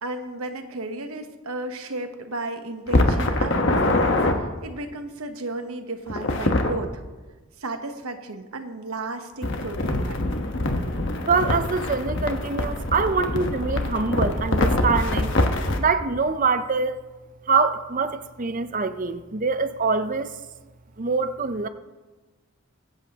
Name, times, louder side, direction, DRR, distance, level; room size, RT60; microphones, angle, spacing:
voice 1, 0.0-7.0 7.6-10.2, right 2 dB, 90° right, 1.0 m, -34 dB
sound 1, 2.9-4.4 6.1-6.7 9.4-15.8, left 2 dB, 60° left, 1.2 m, -24 dB
voice 2, 11.2-15.3 15.8-17.0 17.5-20.4 21.0-21.7, right 4 dB, 40° right, 0.6 m, -24 dB
24.0 x 8.1 x 2.9 m
head